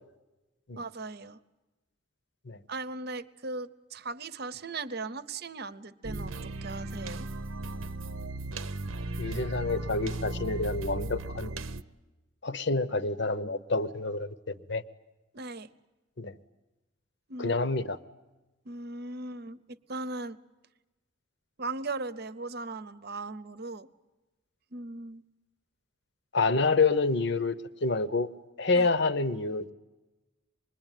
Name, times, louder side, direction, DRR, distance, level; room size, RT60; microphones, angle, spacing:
voice 1, 0.8-1.4 2.7-7.3 15.3-15.7 17.3-17.6 18.6-20.4 21.6-23.9 24.7-25.2 28.7-28.9, right 3 dB, 50° right, 14 dB, 0.8 m, -38 dB
sound 1, 6.0-11.8, right 2 dB, 85° right, 0.9 m, -36 dB
voice 2, 9.2-11.5 12.4-14.8 16.2-16.3 17.4-18.0 26.3-27.5 27.8-28.3 28.6-29.7, left 3 dB, 60° left, 14 dB, 0.9 m, -28 dB
25.5 x 21.5 x 9.2 m, 1.1 s
head